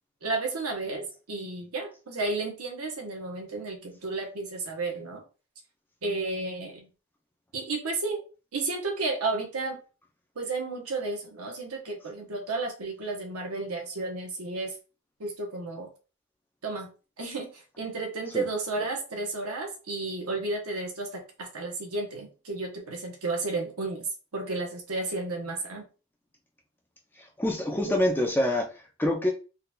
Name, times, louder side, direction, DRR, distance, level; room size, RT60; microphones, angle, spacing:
voice 1, 0.2-5.2 6.0-6.9 7.5-8.2 8.5-9.8 10.3-14.7 15.2-15.9 16.6-16.9 17.2-24.1 24.3-25.9 27.9-28.0, right 3 dB, 85° right, 2 dB, 0.9 m, -32 dB
voice 2, 27.4-29.3, left 1 dB, 10° left, 0 dB, 0.6 m, -26 dB
3.7 x 2.8 x 2.2 m, 0.33 s
head